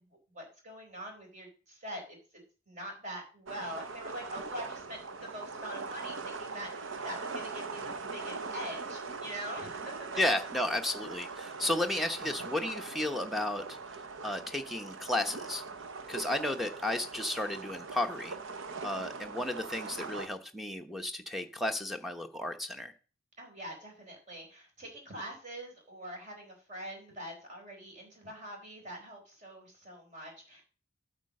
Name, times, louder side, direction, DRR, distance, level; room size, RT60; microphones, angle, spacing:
voice 1, 0.3-2.2 2.7-10.1 11.9-12.0 23.4-30.6, equal, 35° right, 1 dB, 4.4 m, -44 dB
sound 1, 3.5-20.3, right 4 dB, 70° right, 0.9 m, -41 dB
voice 2, 10.2-15.6 16.1-18.4 18.8-22.9, left 1 dB, ahead, 6 dB, 0.9 m, -33 dB
9.0 x 6.5 x 6.5 m, 0.38 s
head